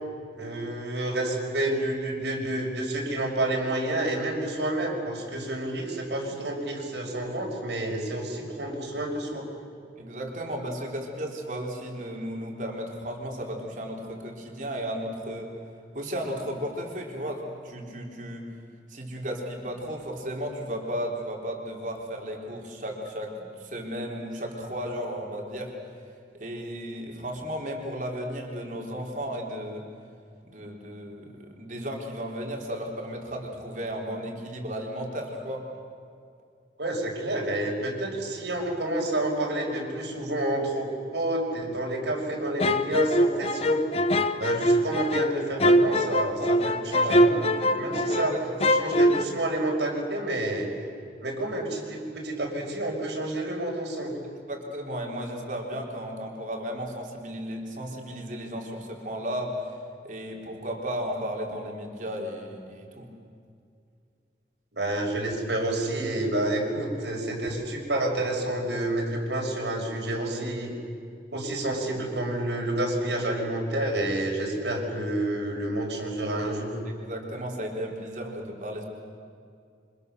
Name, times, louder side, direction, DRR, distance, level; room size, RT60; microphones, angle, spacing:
voice 1, 0.4-9.5 36.8-43.8 44.4-47.3 47.8-48.3 48.6-50.7 51.2-54.1 64.7-70.7 71.3-76.7, right 1 dB, 85° right, -1 dB, 5.9 m, -29 dB
voice 2, 10.0-15.5 15.9-18.5 18.9-25.7 26.3-29.9 30.4-35.6 46.4-46.6 47.0-47.3 47.9-48.5 54.5-59.6 60.0-63.1 76.8-78.8, equal, 45° right, 0 dB, 4.1 m, -34 dB
sound 1, 42.6-48.3 48.6-49.2, equal, 35° left, 0.9 m, -23 dB
28.5 x 25.5 x 6.9 m, 2.3 s
head